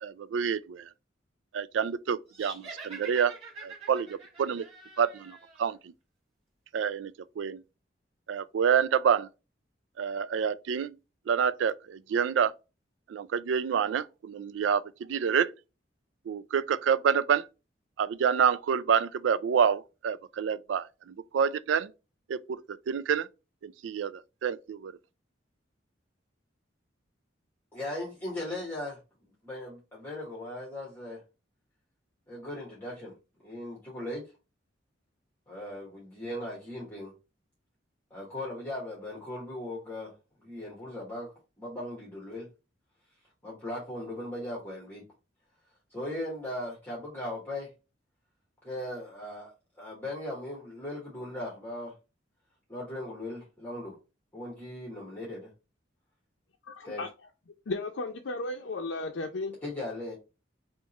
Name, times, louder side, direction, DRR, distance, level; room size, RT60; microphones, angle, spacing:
voice 1, 0.0-0.8 1.5-3.3 3.6-4.7 5.0-5.9 6.7-7.6 8.3-9.3 10.0-10.9 11.3-12.5 13.1-15.5 16.3-17.5 18.0-21.9 22.3-23.3 23.6-24.9, right 7 dB, 80° right, 0.3 m, -28 dB
sound 1, 2.3-5.7, right 4 dB, 35° right, 1.7 m, -46 dB
voice 2, 27.7-29.0 29.4-31.2 32.3-33.1 33.4-34.3 35.5-37.1 38.1-42.5 43.4-45.0 45.9-47.7 48.6-51.9 52.7-54.0 54.3-55.5 56.8-57.0 59.6-60.1, left 1 dB, 10° left, 1.3 m, -38 dB
voice 3, 56.7-57.1 57.7-59.6, left 3 dB, 80° left, 0.5 m, -34 dB
3.5 x 2.9 x 4.1 m
head